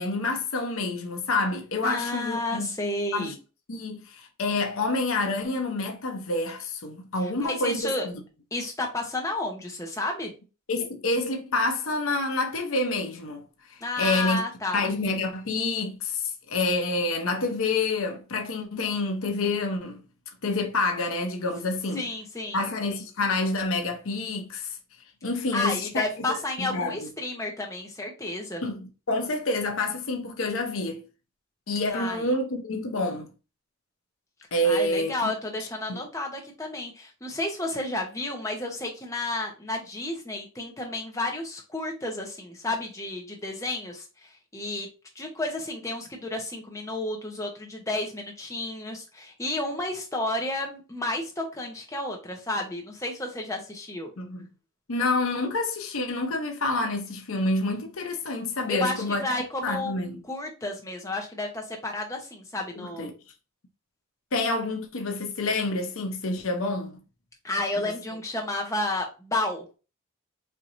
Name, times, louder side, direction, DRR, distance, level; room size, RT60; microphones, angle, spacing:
voice 1, 0.0-2.7 3.1-3.3 3.7-8.2 10.7-13.4 13.7-14.4 14.7-20.0 20.4-22.0 22.5-24.8 25.2-27.1 28.6-31.0 31.7-33.3 34.5-35.3 35.9-36.0 54.2-54.5 54.9-59.3 59.6-60.2 62.8-63.1 64.3-67.0, left 2 dB, 70° left, 0.8 m, -28 dB
voice 2, 1.8-3.3 7.2-8.1 8.5-10.3 13.8-14.9 21.9-22.6 25.5-28.6 31.9-32.3 34.6-44.9 45.1-54.1 58.7-59.9 60.3-63.1 67.4-69.6, left 2 dB, 15° left, 0.8 m, -31 dB
4.6 x 2.8 x 2.6 m
head